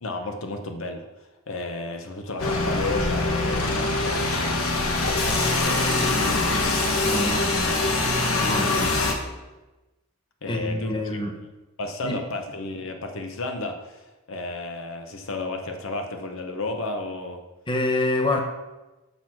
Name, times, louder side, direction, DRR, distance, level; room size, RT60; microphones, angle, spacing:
voice 1, 0.0-1.1 1.5-7.5 8.6-9.0 10.4-11.2 11.8-14.0 14.3-17.4, left 2 dB, 70° left, 5 dB, 0.9 m, -33 dB
sound 1, 2.4-9.1, left 2 dB, 85° left, 1.3 m, -23 dB
voice 2, 7.0-7.7 8.4-8.9 10.5-11.3 12.0-12.2 17.7-18.4, left 2 dB, 25° left, 3 dB, 0.9 m, -26 dB
6.6 x 6.4 x 5.8 m, 1.1 s
head